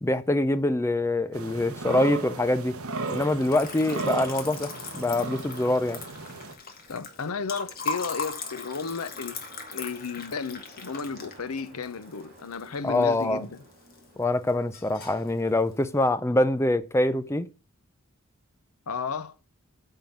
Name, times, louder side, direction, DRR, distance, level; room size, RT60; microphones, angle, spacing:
voice 1, 0.0-2.8 3.1-6.0 12.8-13.4 14.2-17.5, left 1 dB, 10° left, 0.5 m, -25 dB
sound 1, 1.3-6.5, right 3 dB, 75° right, 1.1 m, -35 dB
sound 2, 1.4-16.1, right 1 dB, 40° right, 3.3 m, -55 dB
Liquid, 3.0-13.2 13.6-14.2 14.5-15.3, left 4 dB, 45° left, 1.6 m, -38 dB
voice 2, 6.9-9.4 9.7-13.6 18.9-19.3, left 5 dB, 85° left, 0.7 m, -33 dB
8.9 x 3.8 x 7.0 m
head